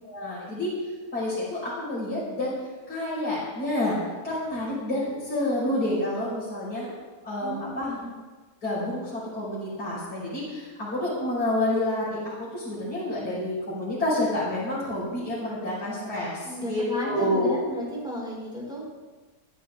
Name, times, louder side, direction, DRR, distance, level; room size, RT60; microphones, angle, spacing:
voice 1, 0.0-0.7 1.1-2.5 2.9-4.0 4.2-6.9 7.2-7.9 8.6-17.6, left 1 dB, 80° left, -9 dB, 6.2 m, -29 dB
voice 2, 7.4-8.1 16.4-18.8, equal, 5° right, -5 dB, 5.4 m, -34 dB
22.0 x 12.0 x 3.7 m, 1.3 s
omnidirectional pair, 1.7 m